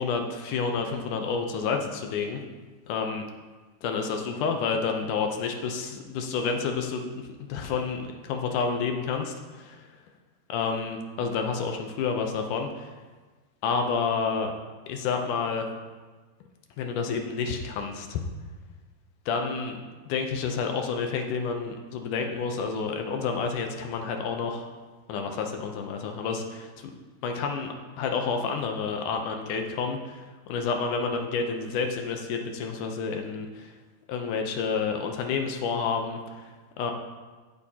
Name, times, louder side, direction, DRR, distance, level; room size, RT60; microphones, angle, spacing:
voice 1, 0.0-2.4 2.9-3.2 3.8-7.2 7.5-9.9 10.5-12.9 13.6-14.5 14.9-15.7 16.8-18.2 19.3-19.8 20.1-24.7 25.1-26.9 27.2-33.7 34.1-36.5 36.8-36.9, left 5 dB, 80° left, 4 dB, 1.9 m, -29 dB
15.0 x 6.7 x 2.8 m, 1.3 s
omnidirectional pair, 4.4 m